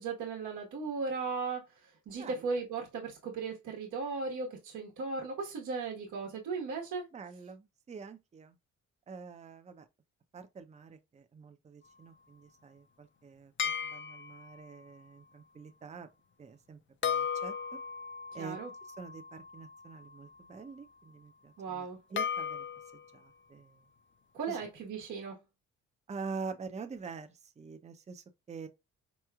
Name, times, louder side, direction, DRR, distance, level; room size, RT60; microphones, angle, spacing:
voice 1, 0.0-7.1 18.4-18.7 21.6-22.0 24.3-25.4, right 4 dB, 75° right, 1.2 m, -37 dB
voice 2, 2.2-2.5 7.1-8.6 9.1-9.9 10.3-16.1 16.4-17.5 18.3-18.6 19.0-22.6 23.1-23.8 24.5-24.6 26.1-28.7, right 5 dB, 25° right, 0.5 m, -46 dB
sound 1, 13.6-14.6 17.0-20.1 22.2-23.1, left 7 dB, 40° left, 0.5 m, -36 dB
4.5 x 3.1 x 2.3 m
cardioid pair, 90°, 30 cm